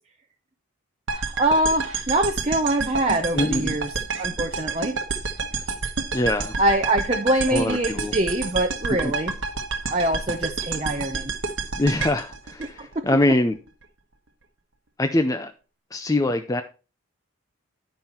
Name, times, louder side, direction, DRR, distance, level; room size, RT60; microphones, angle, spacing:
voice 1, 1.1-3.9 4.2-4.9 6.6-9.3 9.9-11.3 12.9-13.0, right 1 dB, 30° right, 0.7 m, -24 dB
sound 1, 1.1-13.3, right 4 dB, 55° right, 1.1 m, -29 dB
voice 2, 3.3-3.8 6.1-6.6 7.5-8.1 9.0-9.1 11.8-13.6 15.0-15.5 15.9-16.6, left 1 dB, 15° left, 0.4 m, -23 dB
10.5 x 5.5 x 4.4 m
head